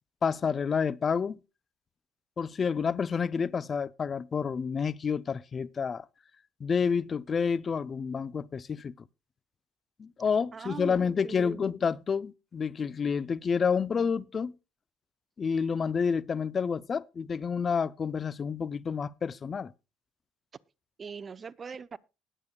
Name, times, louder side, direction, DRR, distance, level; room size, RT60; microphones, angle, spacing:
voice 1, 0.2-1.4 2.4-6.1 6.6-8.9 10.0-14.6 15.4-19.7, left 6 dB, 40° left, 0.6 m, -29 dB
voice 2, 10.5-11.7 21.0-22.0, right 6 dB, 35° right, 0.7 m, -41 dB
20.0 x 8.9 x 2.3 m
supercardioid pair, 75°, 0 cm